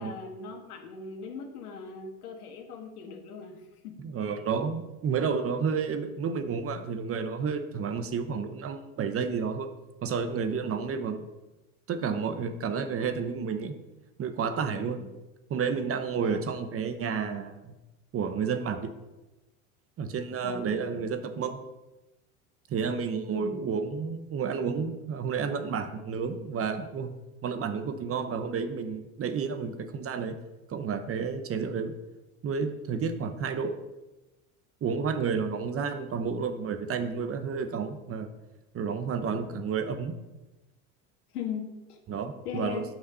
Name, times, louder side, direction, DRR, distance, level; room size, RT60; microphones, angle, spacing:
voice 1, 0.0-3.9 14.7-15.1 16.2-16.4 20.4-21.0 23.3-23.7 41.3-42.0 42.4-42.8, left 6 dB, 85° left, 4 dB, 1.6 m, -39 dB
voice 2, 4.0-9.7 10.0-11.2 11.9-13.7 14.2-15.0 15.5-17.7 18.1-18.9 20.0-21.6 22.7-27.1 27.4-30.4 30.7-31.9 32.4-33.8 34.8-38.3 38.7-40.1 42.1-42.8, right 6 dB, 30° right, 9 dB, 0.9 m, -31 dB
8.0 x 5.8 x 5.5 m, 1.1 s
hypercardioid pair, 95°, 44 cm